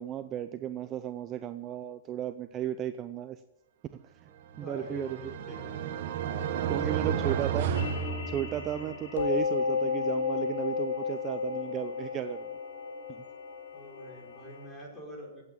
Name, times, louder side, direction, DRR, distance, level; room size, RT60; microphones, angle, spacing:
voice 1, 0.0-3.4 3.9-4.3 4.6-5.3 6.7-7.7 8.3-12.5, right 11 dB, 25° right, 10 dB, 0.6 m, -34 dB
voice 2, 4.5-5.7 6.1-7.4 8.7-8.9 13.7-15.4, left 1 dB, 10° left, -2 dB, 5.2 m, -45 dB
sound 1, 4.5-8.9, right 8 dB, 55° right, 1.5 m, -32 dB
sound 2, 7.7-14.6, left 5 dB, 90° left, 4.1 m, -33 dB
16.5 x 8.7 x 8.7 m, 0.91 s
hypercardioid pair, 160°, 0 cm